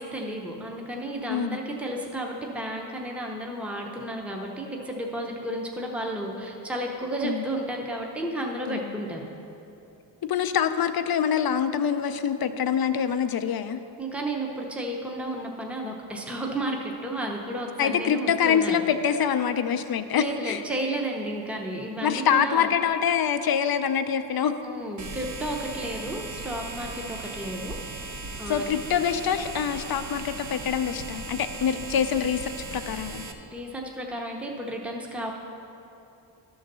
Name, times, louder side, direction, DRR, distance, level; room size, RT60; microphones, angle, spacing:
voice 1, 0.0-9.2 14.0-18.8 20.1-22.7 24.6-27.8 28.4-28.6 33.5-35.3, right 1 dB, 5° right, 0 dB, 0.7 m, -32 dB
voice 2, 1.3-1.6 7.2-7.4 8.7-9.0 10.3-13.8 17.8-20.6 22.0-24.6 28.5-33.2, left 8 dB, 55° left, 10 dB, 0.5 m, -25 dB
sound 1, 25.0-33.3, right 3 dB, 40° right, 0.7 m, -38 dB
11.5 x 3.9 x 6.7 m, 2.8 s
wide cardioid pair, 105°, 44 cm